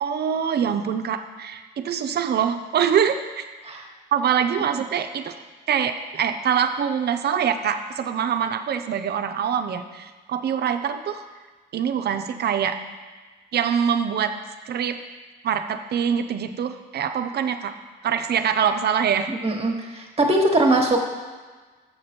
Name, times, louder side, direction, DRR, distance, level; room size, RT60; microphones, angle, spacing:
voice 1, 0.0-3.4 4.1-5.3 5.7-11.3 11.7-12.8 13.5-14.3 14.6-15.0 15.4-17.7 18.0-19.3, right 8 dB, 60° right, 8 dB, 0.6 m, -24 dB
voice 2, 19.4-21.1, right 2 dB, 30° right, 1 dB, 1.2 m, -21 dB
7.1 x 6.6 x 4.3 m, 1.4 s
cardioid pair, 80°, 19 cm